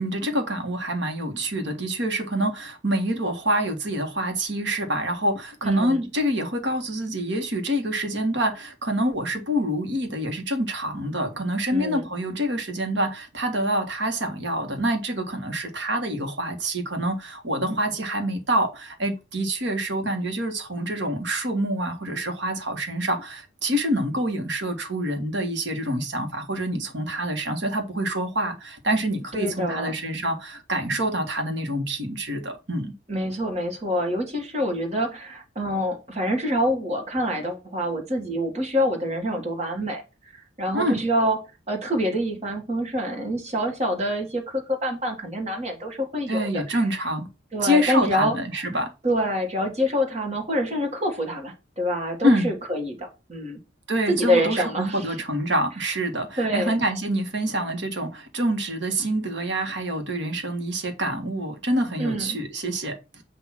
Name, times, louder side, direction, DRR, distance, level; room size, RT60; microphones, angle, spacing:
voice 1, 0.0-32.9 40.7-41.0 46.3-47.3 47.6-48.9 52.2-52.5 53.9-63.2, right 1 dB, 75° right, 1.6 m, -26 dB
voice 2, 5.6-6.0 11.7-12.1 29.3-30.0 33.1-40.0 40.6-41.4 41.7-46.8 47.5-48.4 49.0-53.6 54.1-55.1 56.4-56.8 62.0-62.4, equal, 35° right, 1.7 m, -26 dB
8.2 x 2.9 x 5.8 m
head